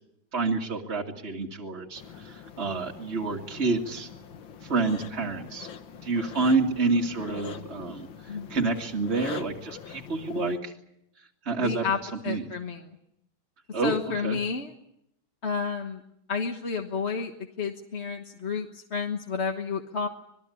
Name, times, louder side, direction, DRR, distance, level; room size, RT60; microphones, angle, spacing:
voice 1, 0.3-4.1 4.6-5.7 6.0-10.7 11.4-12.5 13.7-14.0 14.2-14.4, right 3 dB, 30° right, -1 dB, 2.3 m, -28 dB
sound 1, 2.0-10.6, left 7 dB, 70° left, 2.0 m, -43 dB
voice 2, 11.6-12.0 12.2-12.8 13.8-14.7 15.4-16.0 16.3-17.3 17.6-20.1, left 5 dB, 35° left, 4 dB, 1.4 m, -30 dB
26.0 x 21.0 x 8.4 m, 0.77 s
omnidirectional pair, 2.3 m